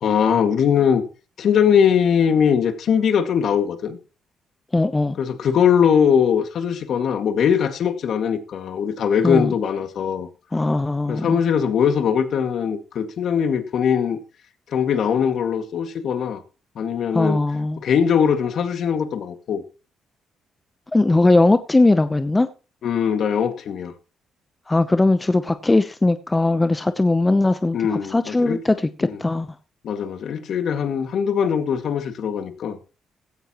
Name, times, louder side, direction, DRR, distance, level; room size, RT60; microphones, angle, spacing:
voice 1, 0.0-1.0 1.4-4.0 5.2-10.3 11.1-14.2 14.7-16.4 16.8-17.4 17.8-19.6 21.1-21.3 22.8-23.9 27.7-28.6 29.0-29.2 29.8-32.8, left 7 dB, 65° left, 2.0 m, -21 dB
voice 2, 4.7-5.2 9.2-9.5 10.5-11.4 17.1-17.8 20.9-22.5 24.7-29.5, left 2 dB, 15° left, 0.8 m, -19 dB
16.5 x 13.5 x 3.0 m
cardioid pair, 90°, 0 cm